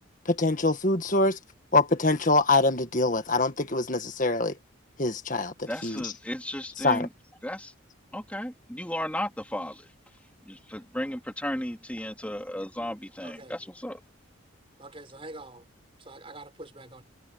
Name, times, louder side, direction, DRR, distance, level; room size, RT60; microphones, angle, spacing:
voice 1, 0.3-1.4 1.7-4.5 5.0-6.1 6.8-7.1, left 2 dB, 40° left, 1.8 m, -24 dB
voice 2, 5.7-7.1 7.4-7.7 8.1-9.9 10.4-14.0, left 1 dB, 5° left, 3.2 m, -34 dB
voice 3, 13.2-13.5 14.8-15.6 16.0-17.0, right 2 dB, 25° right, 4.9 m, -45 dB
head